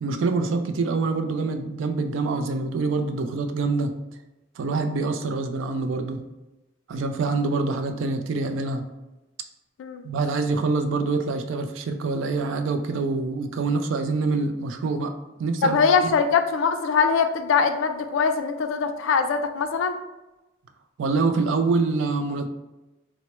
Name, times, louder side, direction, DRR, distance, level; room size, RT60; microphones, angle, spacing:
voice 1, 0.0-3.9 4.6-6.2 6.9-8.8 10.0-15.1 15.4-15.8 16.0-16.1 21.0-22.5, right 3 dB, 70° right, 6 dB, 0.3 m, -25 dB
voice 2, 15.6-20.0, left 5 dB, 75° left, 8 dB, 0.3 m, -22 dB
4.2 x 2.0 x 2.9 m, 1.0 s
head